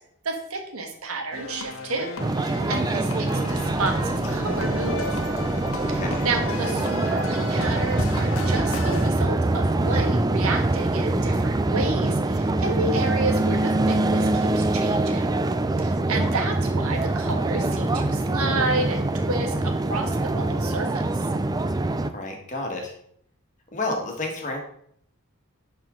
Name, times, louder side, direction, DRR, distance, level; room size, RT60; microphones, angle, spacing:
voice 1, 0.2-2.1 2.4-5.0 5.9-15.2 15.8-21.2, right 3 dB, 75° right, 3 dB, 1.5 m, -31 dB
sound 1, 1.3-9.1, left 2 dB, 65° left, 1.1 m, -34 dB
sound 2, 2.2-22.1, right 2 dB, 15° right, 0.4 m, -24 dB
voice 2, 6.0-6.3 22.1-22.9 23.7-24.6, left 2 dB, 35° left, 1 dB, 1.6 m, -31 dB
11.0 x 4.5 x 3.8 m, 0.66 s
head